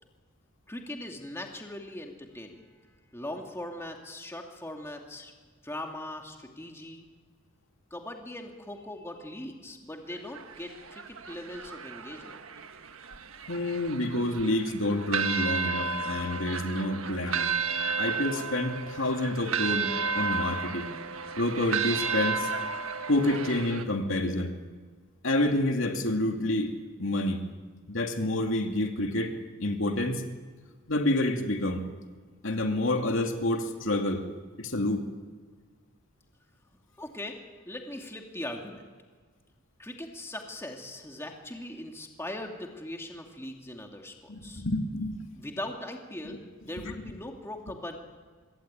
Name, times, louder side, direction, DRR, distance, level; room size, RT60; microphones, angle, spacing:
voice 1, 0.7-2.7 3.1-5.3 5.6-7.1 7.9-12.4 37.0-38.9 39.8-44.6 45.4-48.0, left 1 dB, 10° left, 2 dB, 2.4 m, -40 dB
sound 1, 10.1-23.8, right 5 dB, 75° right, 1.3 m, -33 dB
voice 2, 13.5-17.5 18.0-20.9 21.4-22.5 23.1-24.5 25.2-26.7 27.0-27.4 27.9-29.3 29.6-30.2 30.9-31.8 32.4-34.2 34.6-35.1 44.3-45.1 46.9-47.0, left 1 dB, 65° left, 4 dB, 2.6 m, -28 dB
25.5 x 21.0 x 9.0 m, 1.5 s
head